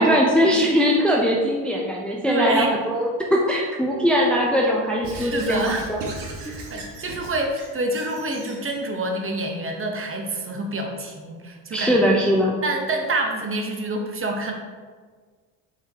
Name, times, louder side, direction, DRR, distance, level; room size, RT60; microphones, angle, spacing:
voice 1, 0.0-5.6 5.9-6.0 6.5-6.6 11.7-12.6, equal, ahead, -2 dB, 0.7 m, -20 dB
voice 2, 2.3-2.7 5.2-5.9 6.4-12.0 12.6-14.5, right 2 dB, 30° right, 2 dB, 1.1 m, -27 dB
Squeak / Writing, 5.0-8.8, right 2 dB, 65° right, 1.6 m, -37 dB
5.8 x 3.7 x 4.7 m, 1.5 s
supercardioid pair, 90°, 44 cm